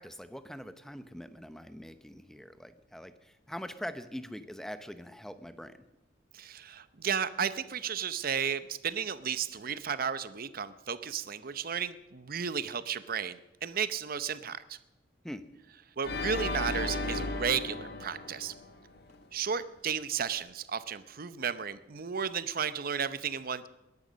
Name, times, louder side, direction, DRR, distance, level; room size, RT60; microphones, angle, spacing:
voice 1, 0.0-5.8 15.2-15.4, equal, 5° left, 11 dB, 0.8 m, -43 dB
voice 2, 6.3-14.8 16.0-18.5 19.3-23.7, right 7 dB, 50° right, 14 dB, 0.7 m, -33 dB
Organ, 16.0-19.2, left 2 dB, 60° left, 1.5 m, -35 dB
20.5 x 11.0 x 6.3 m, 0.99 s
head